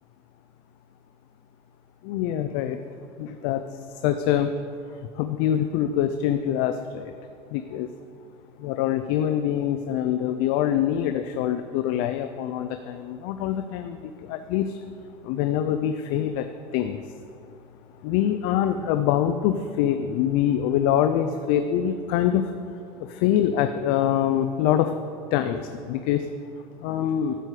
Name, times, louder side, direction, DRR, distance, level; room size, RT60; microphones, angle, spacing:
voice 1, 2.0-2.8 3.2-3.6 4.0-4.5 5.2-7.1 7.5-7.9 8.6-14.8 15.2-16.5 16.7-17.0 18.0-22.5 23.1-24.9 25.3-26.3 26.8-27.4, left 10 dB, 75° left, 8 dB, 0.5 m, -24 dB
12.0 x 4.8 x 8.2 m, 2.4 s
supercardioid pair, 120°, 13 cm